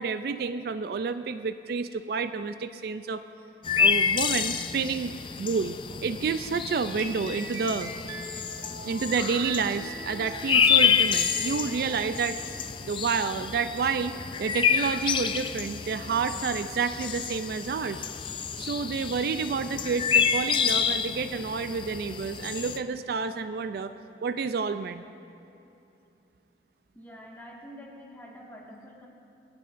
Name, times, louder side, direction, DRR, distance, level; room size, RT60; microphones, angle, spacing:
voice 1, 0.0-3.2 3.8-5.1 5.4-5.8 6.0-7.9 8.8-12.4 12.8-18.1 18.6-23.9 24.2-25.0, right 5 dB, 60° right, 11 dB, 0.3 m, -29 dB
sound 1, 3.6-22.8, left 7 dB, 30° left, 0.3 m, -28 dB
sound 2, 6.8-12.1, right 1 dB, 25° right, 1.5 m, -42 dB
voice 2, 26.9-29.1, equal, 10° left, -3 dB, 1.7 m, -46 dB
24.5 x 10.5 x 2.6 m, 2.7 s
head